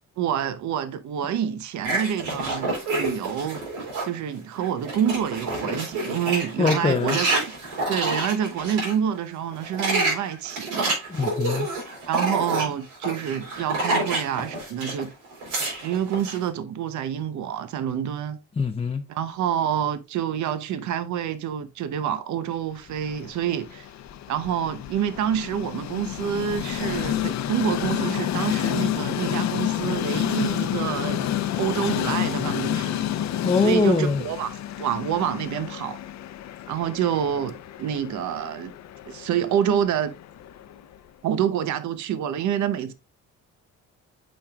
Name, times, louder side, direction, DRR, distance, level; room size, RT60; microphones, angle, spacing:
voice 1, 0.2-3.6 4.0-7.5 7.9-11.0 12.1-15.1 15.8-18.4 19.1-23.9 24.3-31.2 31.6-33.0 33.6-34.5 34.8-36.0 36.7-38.7 39.0-40.1 41.2-42.9, right 9 dB, 70° right, 0.8 m, -27 dB
sound 1, 1.8-4.2 4.6-8.9 9.5-15.0 15.3-16.4, right 2 dB, 85° right, 3.7 m, -28 dB
voice 2, 6.6-7.2 11.1-11.7 18.6-19.0 33.4-34.2, left 4 dB, 20° left, 0.5 m, -22 dB
Train, 22.9-41.0, left 11 dB, 65° left, 0.6 m, -30 dB
8.6 x 5.3 x 2.3 m
cardioid pair, 90°, 30 cm